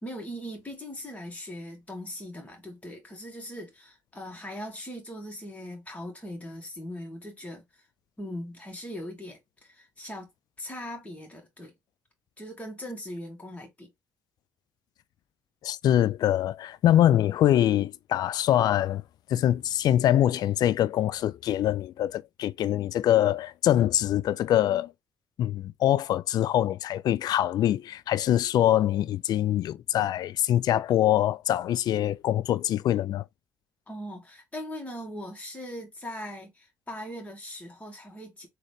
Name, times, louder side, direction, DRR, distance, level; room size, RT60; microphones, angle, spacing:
voice 1, 0.0-7.8 8.2-10.3 10.6-11.7 12.4-13.9 33.9-38.5, equal, 20° left, 1.9 m, -40 dB
voice 2, 15.6-19.0 19.3-24.9 25.4-33.2, left 12 dB, 65° left, 0.3 m, -24 dB
3.8 x 2.9 x 3.4 m
supercardioid pair, 60°, 7 cm